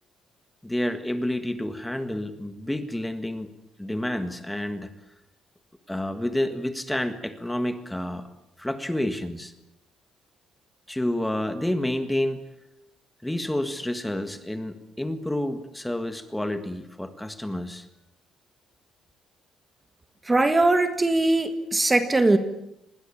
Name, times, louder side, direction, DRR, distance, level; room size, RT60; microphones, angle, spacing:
voice 1, 0.6-3.5 3.8-4.9 5.9-8.3 8.6-9.5 10.9-12.4 13.2-17.9, left 1 dB, 5° left, 9 dB, 1.7 m, -29 dB
voice 2, 20.3-22.4, right 2 dB, 15° right, 10 dB, 1.6 m, -20 dB
27.0 x 21.0 x 8.6 m, 0.82 s
cardioid pair, 145°, 0 cm